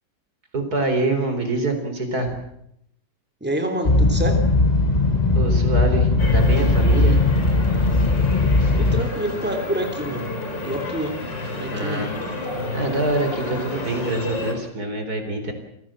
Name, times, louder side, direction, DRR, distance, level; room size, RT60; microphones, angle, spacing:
voice 1, 0.5-2.3 5.3-7.3 11.7-12.1 12.7-15.5, right 2 dB, 60° right, 6 dB, 4.5 m, -25 dB
voice 2, 3.4-4.4 8.7-10.3 10.6-11.2 11.6-12.1, right 1 dB, 5° right, 4 dB, 3.4 m, -27 dB
sound 1, 3.9-9.0, left 2 dB, 25° left, 1.3 m, -18 dB
sound 2, 6.2-14.5, left 2 dB, 90° left, 5.1 m, -31 dB
28.0 x 17.5 x 7.6 m, 0.76 s
omnidirectional pair, 1.9 m